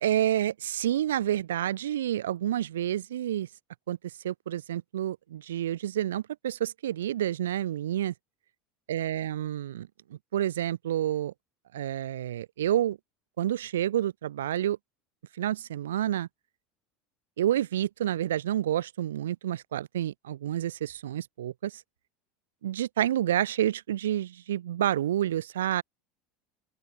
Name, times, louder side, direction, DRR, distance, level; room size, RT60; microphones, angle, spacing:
voice 1, 0.0-3.5 3.9-4.0 4.2-8.1 8.9-9.9 10.3-11.3 11.7-13.0 13.4-14.8 15.4-16.3 17.4-21.8 22.6-25.8, right 12 dB, 85° right, 0.7 m, -29 dB
open air
hypercardioid pair, 90°, 0 cm